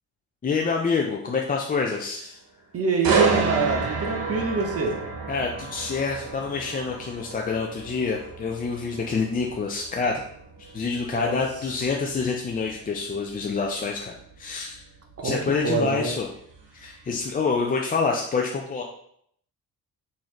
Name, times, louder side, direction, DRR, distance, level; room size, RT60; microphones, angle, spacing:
voice 1, 0.4-2.4 5.3-10.2 10.6-14.8 15.2-16.3 16.7-18.8, left 4 dB, 25° left, 0 dB, 0.4 m, -27 dB
voice 2, 2.7-5.0 11.0-11.4 15.2-16.1, right 4 dB, 40° right, 2 dB, 0.8 m, -26 dB
sound 1, 3.0-16.9 17.3-17.6, right 5 dB, 70° right, 0.9 m, -31 dB
3.9 x 2.7 x 3.1 m, 0.68 s
cardioid pair, 70°, 36 cm